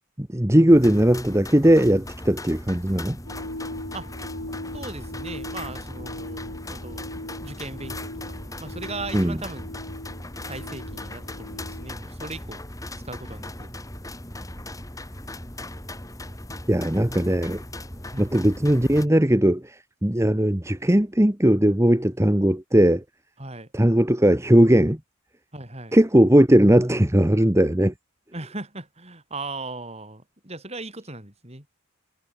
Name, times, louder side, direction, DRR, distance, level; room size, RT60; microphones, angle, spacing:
voice 1, 0.2-3.2 9.1-9.4 16.7-17.6 18.2-23.0 23.7-25.0 25.9-27.9, right 1 dB, 15° right, 1.1 m, -18 dB
sound 1, 0.7-19.1, left 1 dB, 15° left, 6.0 m, -38 dB
sound 2, 3.2-11.9, left 1 dB, 80° left, 6.3 m, -39 dB
voice 2, 4.7-7.0 7.4-9.7 10.4-12.6 13.0-13.7 18.1-18.4 23.4-23.7 25.5-25.9 28.3-31.7, right 2 dB, 30° right, 6.2 m, -38 dB
head